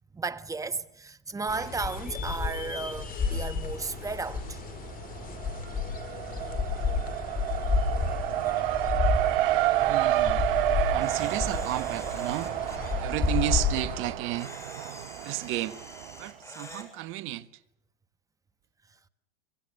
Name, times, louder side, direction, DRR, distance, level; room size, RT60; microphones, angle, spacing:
voice 1, 0.1-4.6, right 4 dB, 10° right, 1.2 m, -34 dB
sound 1, 1.5-14.1, left 5 dB, 30° left, 4.9 m, -31 dB
Race car auto racing, 3.8-4.5 4.9-16.2, right 14 dB, 65° right, 0.9 m, -30 dB
voice 2, 9.8-10.5 10.9-12.5 13.0-14.5 15.2-15.8 16.2-17.5, right 15 dB, 45° right, 1.4 m, -32 dB
Camera, 11.0-12.9 14.4-16.9, left 1 dB, 10° left, 7.0 m, -46 dB
24.5 x 24.0 x 6.5 m
hypercardioid pair, 105°, 29 cm